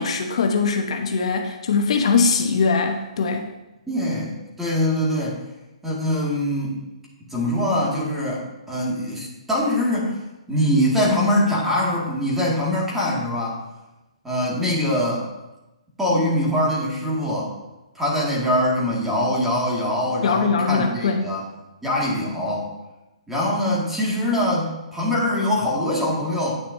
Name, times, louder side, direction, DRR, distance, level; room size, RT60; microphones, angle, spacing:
voice 1, 0.0-3.5 20.2-21.3, left 4 dB, 60° left, 4 dB, 0.9 m, -21 dB
voice 2, 3.9-4.3 4.6-5.4 5.8-6.8 7.3-10.2 10.5-13.6 14.2-15.3 16.0-17.5 18.0-21.4 21.8-22.7 23.3-26.6, left 1 dB, 5° right, -5 dB, 2.0 m, -23 dB
10.0 x 8.9 x 2.7 m, 1.0 s
hypercardioid pair, 155°, 4 cm